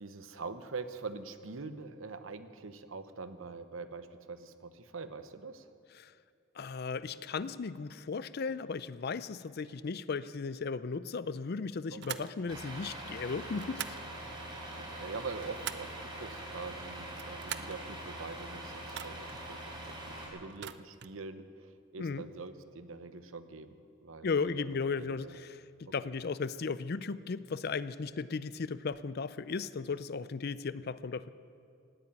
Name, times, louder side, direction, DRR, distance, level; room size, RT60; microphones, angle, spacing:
voice 1, 0.0-5.7 11.9-12.3 14.9-23.7 24.0-25.4 25.9-26.1, right 4 dB, 75° right, 10 dB, 0.9 m, -44 dB
voice 2, 6.6-14.0 22.0-22.2 24.2-31.3, left 4 dB, 50° left, 15 dB, 0.5 m, -36 dB
sound 1, 12.0-12.3 13.6-14.1 15.1-16.0 17.0-17.8 18.9-19.4 20.5-21.2, right 10 dB, 55° right, 0.5 m, -43 dB
Truck, 12.5-20.3, right 1 dB, 25° right, 3.9 m, -43 dB
17.0 x 8.8 x 9.6 m, 2.4 s
head